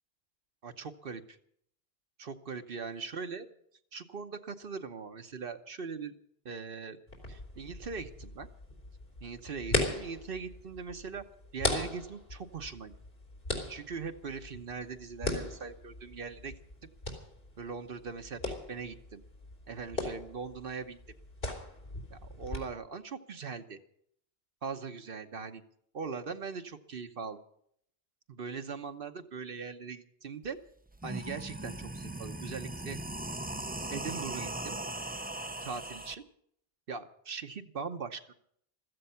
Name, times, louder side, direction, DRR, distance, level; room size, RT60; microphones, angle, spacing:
voice 1, 0.6-1.4 2.2-3.5 3.9-6.1 6.4-7.0 7.3-8.5 9.2-11.2 11.5-12.9 13.7-16.5 17.6-18.4 18.7-19.2 19.7-21.0 22.1-23.8 24.6-25.6 25.9-27.4 28.3-30.6 31.0-33.0 33.9-34.8 35.6-36.2 36.9-38.2, right 5 dB, 65° right, 7 dB, 1.1 m, -40 dB
sound 1, 7.1-22.6, left 2 dB, 70° left, 3.7 m, -39 dB
sound 2, 30.4-30.5 30.9-36.1, right 1 dB, 10° right, 0.5 m, -39 dB
15.5 x 14.5 x 5.7 m, 0.67 s
omnidirectional pair, 1.0 m